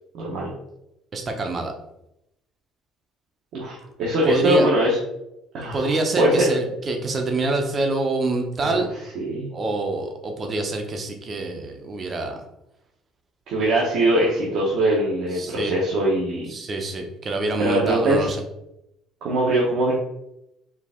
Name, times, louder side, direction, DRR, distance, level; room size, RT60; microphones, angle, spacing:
voice 1, 0.1-0.5 3.5-5.0 5.5-6.5 8.6-8.8 9.1-9.5 13.5-16.5 17.6-18.3 19.2-19.9, right 1 dB, 60° right, -4 dB, 0.9 m, -22 dB
voice 2, 1.1-1.7 4.2-4.7 5.7-8.9 9.5-12.4 15.3-15.8 16.5-18.4, right 2 dB, 25° right, 4 dB, 0.6 m, -26 dB
4.5 x 2.5 x 3.6 m, 0.84 s
cardioid pair, 165°, 0 cm